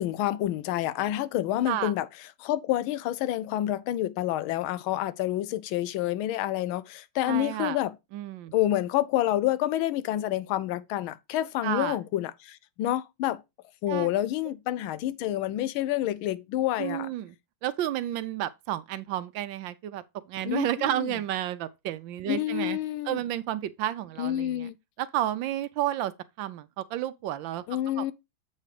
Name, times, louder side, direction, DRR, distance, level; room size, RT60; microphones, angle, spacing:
voice 1, 0.0-2.1 2.4-7.9 8.5-13.4 13.8-17.1 20.4-21.1 22.3-23.2 24.2-24.7 27.7-28.1, left 13 dB, 85° left, 1.4 m, -28 dB
voice 2, 7.3-7.8 8.1-8.5 11.6-12.0 13.9-14.1 16.8-17.3 17.6-20.0 20.3-22.8 23.1-24.7 25.0-26.1 26.4-27.6 28.0-28.1, right 13 dB, 75° right, 1.3 m, -31 dB
7.6 x 4.2 x 4.8 m
omnidirectional pair, 2.2 m